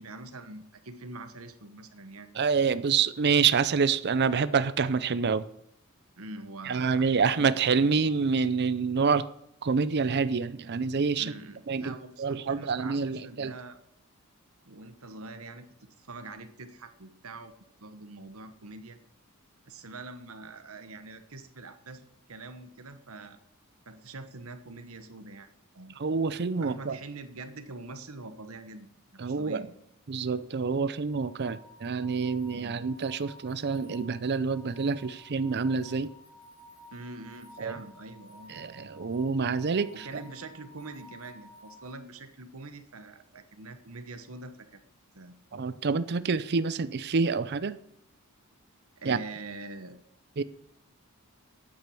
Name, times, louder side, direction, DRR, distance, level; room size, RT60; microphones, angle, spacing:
voice 1, 0.0-2.3 6.2-8.2 11.2-13.8 14.6-17.5 17.8-19.0 19.7-23.4 23.9-25.5 25.7-25.9 26.6-29.7 32.5-32.8 36.9-38.6 39.9-44.8 45.1-45.3 49.0-50.0, right 2 dB, 70° right, 1.2 m, -44 dB
voice 2, 2.4-5.4 6.6-9.3 9.6-11.3 11.7-13.5 26.0-27.0 29.2-29.6 30.1-36.1 37.6-37.7 38.5-40.1 45.5-47.8 49.0-49.2 50.4-50.5, right 5 dB, 50° right, 0.5 m, -27 dB
sound 1, 31.1-41.9, left 1 dB, 60° left, 2.7 m, -53 dB
9.1 x 8.7 x 7.0 m
head